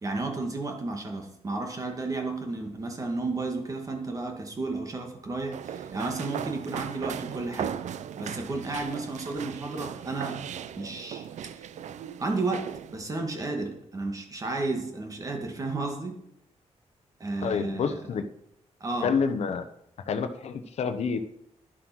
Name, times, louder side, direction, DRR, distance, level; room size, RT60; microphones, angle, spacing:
voice 1, 0.0-7.7 8.2-10.4 10.8-11.3 11.5-11.7 12.2-12.7 12.9-16.2 17.2-18.0 18.8-19.1, right 3 dB, 30° right, 3 dB, 2.0 m, -32 dB
sound 1, 5.5-13.0, right 9 dB, 90° right, 0.6 m, -37 dB
voice 2, 17.4-18.2 19.0-19.6 20.1-21.2, left 6 dB, 65° left, 8 dB, 0.9 m, -28 dB
11.0 x 7.6 x 6.2 m, 0.78 s
wide cardioid pair, 165°, 12 cm